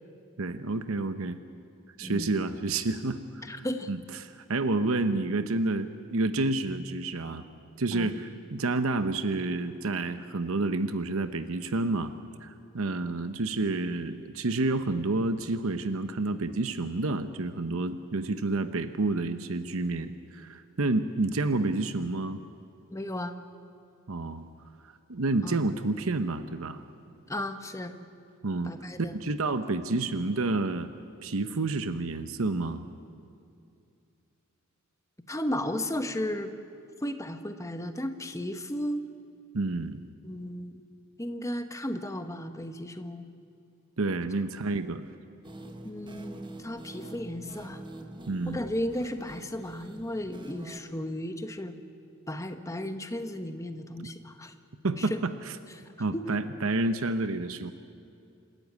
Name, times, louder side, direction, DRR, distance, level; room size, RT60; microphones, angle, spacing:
voice 1, 0.4-1.4 2.0-7.4 7.8-12.1 12.4-22.4 24.1-24.5 25.1-26.8 28.4-28.7 29.1-30.9 31.2-32.8 39.5-40.0 44.0-45.1 48.3-48.6 54.0-54.1 54.8-55.6 56.0-57.7, right 2 dB, 70° right, 10 dB, 0.9 m, -29 dB
voice 2, 2.0-2.3 3.5-3.9 7.9-8.1 22.9-23.4 25.4-25.6 27.3-27.9 28.7-29.2 29.9-30.0 35.3-36.5 37.0-39.0 40.2-40.9 41.2-43.3 45.8-47.8 48.5-51.7 52.3-54.5 55.0-55.2 56.1-56.4, left 1 dB, 15° left, 8 dB, 1.1 m, -34 dB
sound 1, 45.4-50.8, right 1 dB, 20° right, 1.3 m, -45 dB
27.0 x 13.5 x 9.5 m, 2.5 s
head